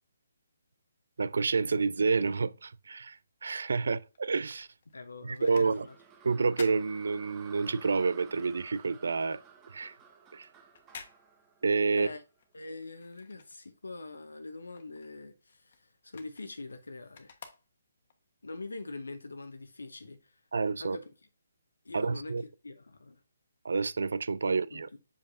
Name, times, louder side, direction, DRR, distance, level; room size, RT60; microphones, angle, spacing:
voice 1, 1.2-4.7 5.2-5.9 6.2-9.4 9.7-9.9 10.3-10.5 11.6-12.1 20.5-21.0 21.9-22.4 23.6-24.9, right 4 dB, 70° right, 0.4 m, -29 dB
sound 1, 4.1-7.8 8.1-14.1 14.4-18.2 18.7-18.8, left 6 dB, 50° left, 1.2 m, -53 dB
voice 2, 4.9-5.9 11.9-12.2 12.5-17.3 18.4-20.3 20.8-21.1 21.8-22.3 22.6-23.2 24.4-25.0, left 3 dB, 85° left, 0.8 m, -44 dB
sound 2, 5.4-12.6, right 7 dB, 20° right, 1.1 m, -55 dB
7.1 x 5.1 x 2.7 m
figure-of-eight pair, 145°, 0 cm